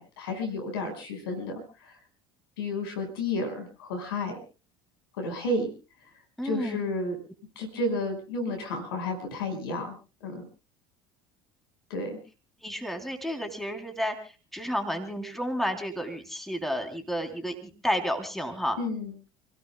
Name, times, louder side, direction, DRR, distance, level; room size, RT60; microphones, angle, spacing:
voice 1, 0.0-1.5 1.8-1.9 2.6-4.3 5.2-5.7 6.4-7.1 7.6-10.0 10.2-10.5 11.9-12.2 18.8-19.1, left 2 dB, 80° left, 5 dB, 5.4 m, -31 dB
voice 2, 6.4-6.8 12.6-18.8, equal, ahead, 5 dB, 3.5 m, -31 dB
29.5 x 17.0 x 2.3 m, 0.34 s
hypercardioid pair, 70°, 12 cm